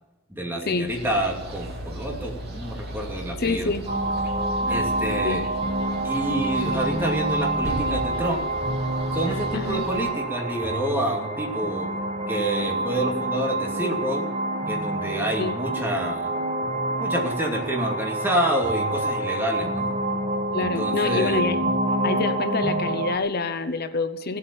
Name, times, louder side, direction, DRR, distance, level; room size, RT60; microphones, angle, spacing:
voice 1, 0.3-3.8 4.7-5.5 6.0-8.5 9.1-11.9 12.3-14.3 14.7-16.3 17.0-19.9 20.6-21.4, right 1 dB, 10° right, -1 dB, 2.7 m, -28 dB
sound 1, 0.9-10.1, equal, 50° right, 2.7 m, -37 dB
voice 2, 3.4-3.9 5.2-5.4 9.5-9.9 15.4-15.5 20.5-21.6 22.0-24.4, left 4 dB, 50° left, 10 dB, 0.9 m, -27 dB
sound 2, 3.9-23.2, right 1 dB, 30° right, 1.6 m, -27 dB
16.5 x 8.5 x 9.1 m, 1.1 s
head